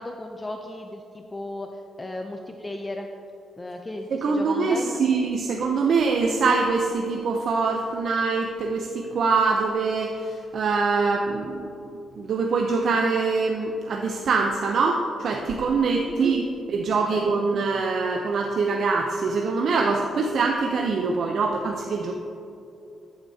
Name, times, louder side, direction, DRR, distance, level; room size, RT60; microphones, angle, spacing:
voice 1, 0.0-3.1 3.6-5.0 16.1-16.3 17.1-17.2, left 1 dB, 15° left, 3 dB, 0.5 m, -35 dB
voice 2, 4.1-22.1, right 4 dB, 60° right, 2 dB, 0.6 m, -24 dB
10.5 x 8.6 x 2.8 m, 2.7 s
cardioid pair, 115°, 0 cm